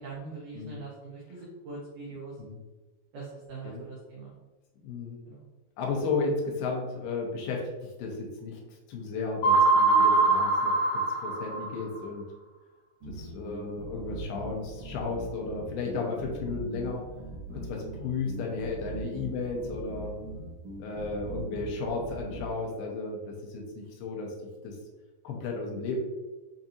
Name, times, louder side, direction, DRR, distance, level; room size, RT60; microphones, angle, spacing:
voice 1, 0.0-2.3 3.1-4.3 5.3-5.4, right 4 dB, 85° right, -4 dB, 1.8 m, -42 dB
voice 2, 4.8-5.2 5.8-7.6 8.0-8.6 8.9-12.2 13.1-17.0 17.5-20.1 20.8-24.3 24.6-24.8 25.2-26.0, left 4 dB, 80° left, 0 dB, 2.6 m, -34 dB
sound 1, 9.4-12.0, right 3 dB, 60° left, 2.2 m, -23 dB
sound 2, 13.0-22.5, right 2 dB, 65° right, 1.6 m, -41 dB
7.1 x 2.5 x 2.7 m, 1.2 s
omnidirectional pair, 4.8 m